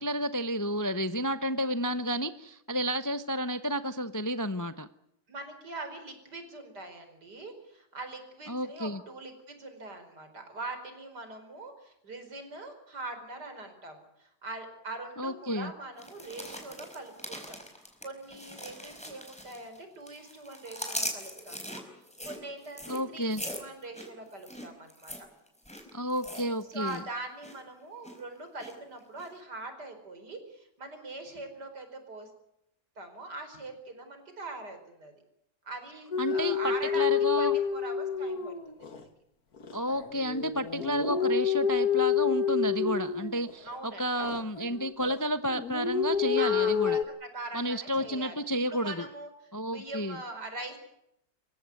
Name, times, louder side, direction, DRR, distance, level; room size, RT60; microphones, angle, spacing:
voice 1, 0.0-4.9 8.5-9.0 15.2-15.7 22.9-23.4 25.9-27.0 36.2-37.6 39.7-47.0 47.5-49.1 49.5-50.2, equal, 20° left, 11 dB, 0.5 m, -31 dB
voice 2, 5.3-17.6 18.0-21.8 22.2-25.3 26.7-32.3 33.0-35.1 35.7-39.1 43.6-44.4 46.4-48.4 48.7-49.3 49.7-50.8, right 2 dB, 75° right, 7 dB, 5.3 m, -42 dB
sound 1, 16.0-19.8 20.1-27.0 27.3-27.6 28.0-28.7 29.2-29.3, equal, 5° left, 4.6 m, -41 dB
sound 2, 36.1-39.0 39.6-43.8 44.2-45.2 45.5-47.0, left 7 dB, 60° left, 2.2 m, -29 dB
26.5 x 15.5 x 9.6 m, 0.79 s
omnidirectional pair, 1.8 m